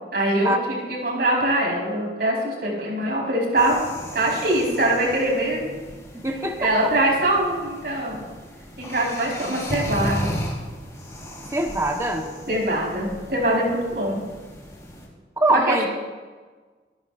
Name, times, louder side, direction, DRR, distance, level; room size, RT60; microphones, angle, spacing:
voice 1, 0.1-3.8 4.1-5.7 6.6-8.3 8.8-10.3 12.5-14.2 15.7-15.9, right 1 dB, 60° right, -2 dB, 5.2 m, -23 dB
sound 1, 3.6-15.1, equal, 20° left, 3.1 m, -35 dB
voice 2, 6.1-6.9 11.5-12.3 15.4-15.9, right 1 dB, 15° right, 2 dB, 1.4 m, -23 dB
25.0 x 11.5 x 2.7 m, 1.4 s
head